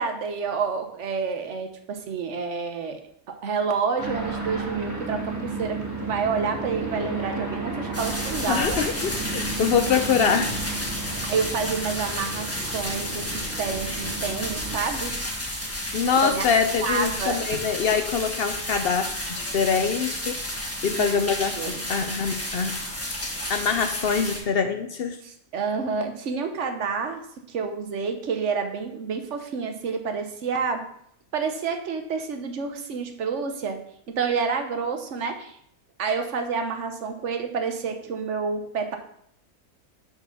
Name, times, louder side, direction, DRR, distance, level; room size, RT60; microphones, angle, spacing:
voice 1, 0.0-3.0 3.4-8.8 11.0-15.1 16.2-16.5 16.8-17.6 20.9-21.2 21.5-21.9 25.2-27.2 27.5-30.8 31.3-33.8 34.1-35.6 36.0-39.0, right 5 dB, 55° right, 6 dB, 1.2 m, -29 dB
sound 1, 4.0-14.8, right 3 dB, 10° right, 1.4 m, -33 dB
sound 2, 7.9-24.4, left 1 dB, 10° left, 1.1 m, -32 dB
voice 2, 8.5-10.6 10.8-10.9 15.9-20.4 20.8-22.8 23.5-25.2, left 6 dB, 65° left, 7 dB, 0.6 m, -24 dB
5.9 x 4.6 x 5.9 m, 0.69 s
omnidirectional pair, 1.5 m